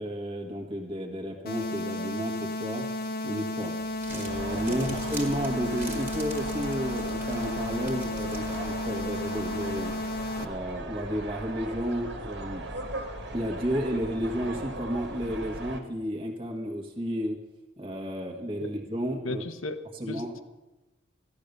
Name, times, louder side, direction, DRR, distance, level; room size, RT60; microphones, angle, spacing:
voice 1, 0.0-2.9 3.2-3.7 4.1-9.9 10.4-12.6 13.3-17.4 17.8-19.4 20.0-20.4, equal, 25° right, 0 dB, 1.4 m, -32 dB
sound 1, 1.5-10.5, left 2 dB, 45° left, 1.0 m, -33 dB
Crumpling crinkling, 3.8-9.1, right 3 dB, 10° right, 1.8 m, -45 dB
sound 2, 4.3-15.8, right 1 dB, 55° right, 1.8 m, -38 dB
voice 2, 19.2-19.8 20.1-20.4, left 2 dB, 75° left, 11 dB, 1.0 m, -35 dB
15.5 x 11.5 x 6.7 m, 1.1 s
head